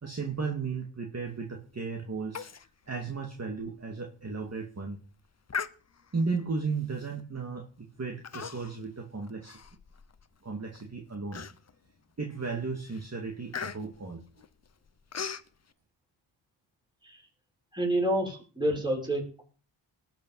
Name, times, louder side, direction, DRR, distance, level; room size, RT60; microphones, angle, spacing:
voice 1, 0.0-2.5 2.9-5.0 6.1-9.6 10.4-11.5 12.2-14.5, right 4 dB, 30° right, 3 dB, 2.3 m, -35 dB
Human voice, 2.3-2.7 3.0-3.1 3.6-3.7 4.3-4.5 5.5-6.2 7.0-7.2 8.2-8.8 9.2-10.3 10.7-10.8 11.3-11.9 12.4-12.6 12.9-15.5, left 6 dB, 30° left, 0.9 m, -39 dB
voice 2, 17.7-19.4, right 1 dB, 10° right, 0 dB, 6.2 m, -29 dB
19.5 x 7.9 x 5.7 m, 0.40 s
cardioid pair, 95°, 49 cm